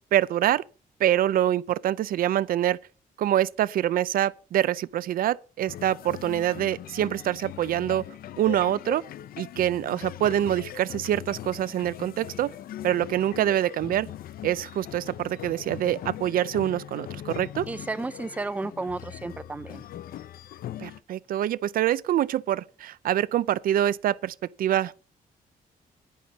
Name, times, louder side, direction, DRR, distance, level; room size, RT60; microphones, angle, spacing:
voice 1, 0.1-0.6 1.0-2.8 3.2-8.0 8.4-9.0 9.4-12.5 12.8-14.1 14.4-17.7 20.8-24.9, right 12 dB, 75° right, 0.5 m, -25 dB
sound 1, 5.7-21.0, left 12 dB, 80° left, 0.6 m, -40 dB
voice 2, 17.7-19.8, right 3 dB, 10° right, 0.4 m, -33 dB
11.0 x 10.5 x 4.0 m
cardioid pair, 120°, 15 cm